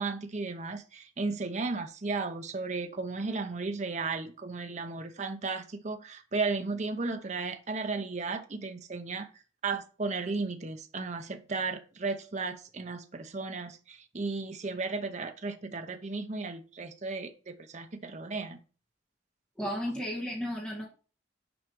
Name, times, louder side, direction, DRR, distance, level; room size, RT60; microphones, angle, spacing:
voice 1, 0.0-9.3 9.6-18.6, right 3 dB, 35° right, 0.7 m, -34 dB
voice 2, 19.6-20.9, equal, 5° left, 1.6 m, -33 dB
6.2 x 4.9 x 4.5 m
head